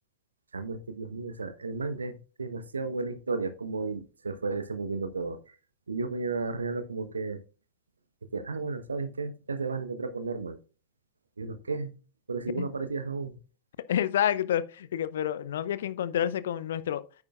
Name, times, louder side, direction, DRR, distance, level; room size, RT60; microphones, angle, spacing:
voice 1, 0.5-5.4 5.9-7.4 8.3-10.6 11.4-11.9 12.3-13.4, right 4 dB, 75° right, 1.0 m, -33 dB
voice 2, 13.9-17.0, left 10 dB, 60° left, 0.6 m, -29 dB
9.7 x 8.6 x 2.4 m
figure-of-eight pair, 90°, 0 cm